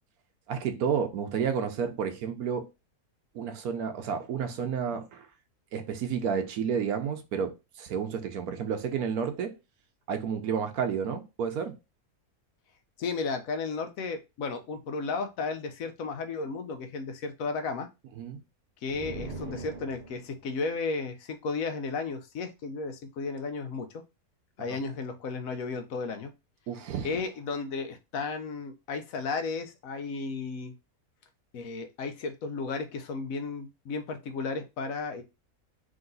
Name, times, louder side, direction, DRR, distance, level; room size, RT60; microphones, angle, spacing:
voice 1, 0.5-2.7 3.3-5.3 5.7-9.6 10.1-11.8 18.2-18.4 24.7-24.8 26.7-27.2, right 7 dB, 85° right, 1.2 m, -31 dB
voice 2, 13.0-17.9 18.8-24.0 24.6-26.3 27.0-30.7 31.5-35.2, left 4 dB, 70° left, 1.1 m, -34 dB
sound 1, 18.9-20.5, right 2 dB, 35° right, 0.8 m, -40 dB
3.8 x 2.9 x 3.8 m
omnidirectional pair, 1.5 m